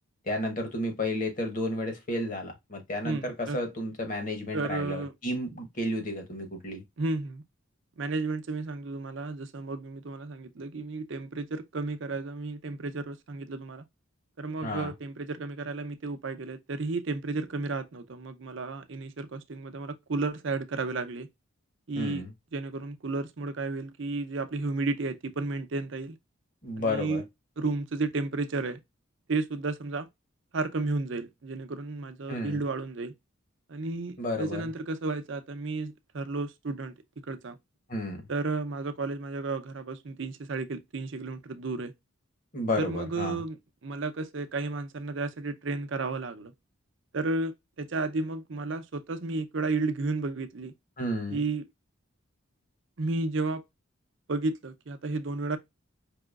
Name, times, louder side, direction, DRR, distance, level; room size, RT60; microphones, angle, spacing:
voice 1, 0.2-6.8 14.6-14.9 22.0-22.3 26.6-27.2 32.3-32.6 34.2-34.7 37.9-38.2 42.5-43.4 51.0-51.4, left 1 dB, 40° left, 1.0 m, -32 dB
voice 2, 3.0-3.6 4.5-5.1 7.0-7.4 8.0-13.8 14.4-21.3 21.9-22.2 22.5-26.2 26.8-27.2 27.6-28.8 29.3-30.1 30.5-33.1 33.7-36.9 37.3-37.6 38.3-41.9 42.8-46.5 47.1-50.7 51.3-51.6 53.0-53.6 54.3-55.6, right 3 dB, 60° right, 0.6 m, -32 dB
4.8 x 3.0 x 2.3 m
head